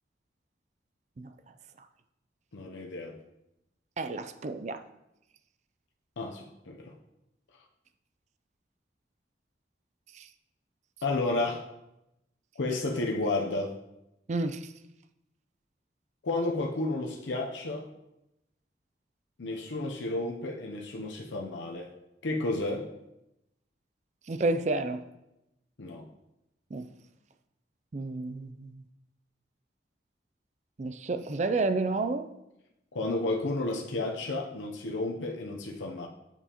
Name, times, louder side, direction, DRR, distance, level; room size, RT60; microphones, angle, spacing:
voice 1, 2.5-3.2 6.2-6.9 11.0-11.6 12.6-13.7 16.2-17.9 19.4-21.9 22.2-22.9 25.8-26.1 32.9-36.1, left 2 dB, 90° left, 1 dB, 0.7 m, -32 dB
voice 2, 4.0-4.8 10.2-10.3 14.3-14.6 24.3-25.0 26.7-26.9 27.9-28.7 30.8-32.3, right 3 dB, 40° right, 9 dB, 0.4 m, -30 dB
7.0 x 6.8 x 2.9 m, 0.89 s
head